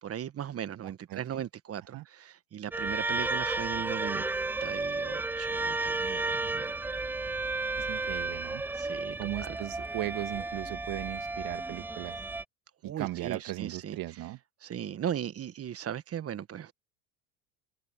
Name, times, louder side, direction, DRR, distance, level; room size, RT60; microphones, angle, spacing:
voice 1, 0.0-4.3 4.6-6.8 8.7-9.6 12.8-14.0 14.6-16.7, right 9 dB, 35° right, 1.3 m, -38 dB
voice 2, 0.8-1.4 1.9-2.0 7.8-8.6 9.2-12.2 12.8-14.4, right 16 dB, 55° right, 1.9 m, -37 dB
sound 1, 2.7-12.4, right 3 dB, 5° right, 0.3 m, -33 dB
hypercardioid pair, 90°, 42 cm